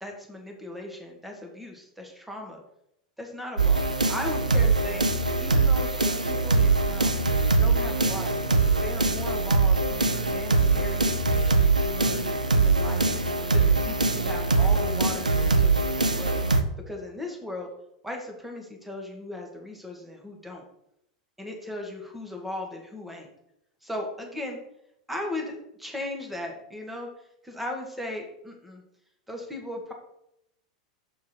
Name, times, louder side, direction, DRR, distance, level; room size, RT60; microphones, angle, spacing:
voice 1, 0.0-2.6 3.2-5.0 5.4-7.2 7.6-8.4 8.8-13.2 13.5-16.4 16.9-17.7 18.0-20.6 21.4-23.3 23.8-24.6 25.1-27.1 27.4-28.8 29.3-29.9, left 1 dB, 5° right, 1 dB, 1.7 m, -37 dB
sound 1, 3.6-16.6, right 3 dB, 85° right, 0.6 m, -23 dB
6.7 x 4.6 x 4.4 m, 0.79 s
figure-of-eight pair, 90°, 4 cm